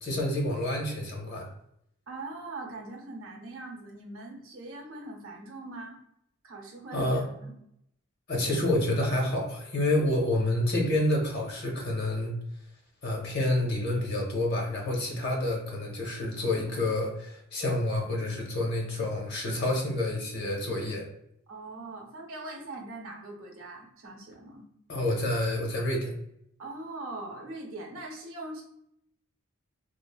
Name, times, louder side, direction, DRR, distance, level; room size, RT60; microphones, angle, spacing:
voice 1, 0.0-1.5 6.9-7.3 8.3-12.4 13.0-21.1 24.9-26.1, left 1 dB, 50° left, 0 dB, 0.7 m, -28 dB
voice 2, 2.1-6.0 6.4-7.5 21.5-24.7 26.6-28.6, right 2 dB, 70° right, 1 dB, 0.7 m, -41 dB
3.1 x 2.0 x 2.2 m, 0.73 s
head